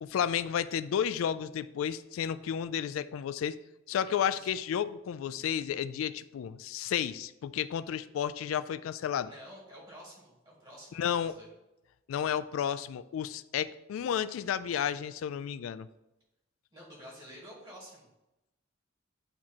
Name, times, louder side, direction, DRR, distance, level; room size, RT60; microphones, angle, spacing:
voice 1, 0.0-3.6 3.9-9.3 10.9-11.3 12.1-15.9, left 8 dB, 75° left, 15 dB, 0.3 m, -32 dB
voice 2, 9.2-11.5 16.7-18.1, equal, 25° right, -4 dB, 1.8 m, -50 dB
8.5 x 3.0 x 4.2 m, 0.94 s
head